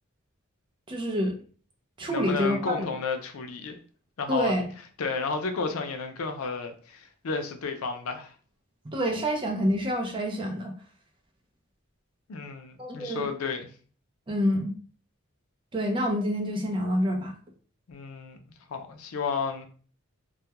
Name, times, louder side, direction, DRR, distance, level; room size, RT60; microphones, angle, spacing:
voice 1, 0.9-1.4 2.0-2.8 4.3-4.7 8.8-10.7 12.8-13.3 14.3-14.7 15.7-17.3, equal, 25° right, 1 dB, 0.5 m, -27 dB
voice 2, 2.1-3.8 4.2-4.5 5.0-8.3 12.3-13.7 17.9-18.4 18.7-19.7, left 4 dB, 85° left, 6 dB, 0.5 m, -32 dB
2.3 x 2.1 x 2.8 m, 0.41 s
head